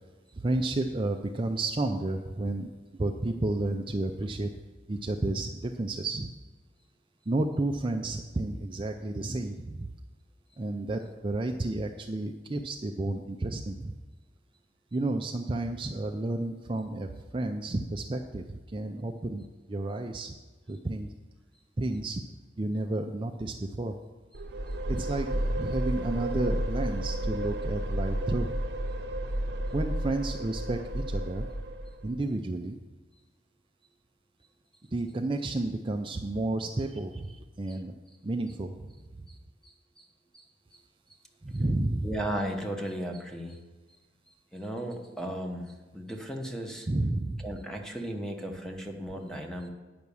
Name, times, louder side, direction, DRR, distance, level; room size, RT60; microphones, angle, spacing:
voice 1, 0.3-4.5 4.9-6.3 7.3-9.9 10.6-14.0 14.9-20.4 20.7-21.1 21.8-22.2 22.6-24.0 24.9-28.5 29.7-31.5 32.0-32.8 34.9-37.3 37.6-37.9 38.2-38.7 39.2-39.3 41.4-42.1 46.9-47.5, right 2 dB, 30° right, 3 dB, 0.5 m, -31 dB
sound 1, 24.3-32.2, right 1 dB, 60° right, 0.8 m, -32 dB
voice 2, 39.6-40.1 40.3-40.5 40.7-40.8 42.0-43.6 44.5-46.9 47.4-49.7, right 1 dB, 5° left, 2 dB, 1.0 m, -36 dB
9.5 x 6.1 x 6.9 m, 1.2 s
head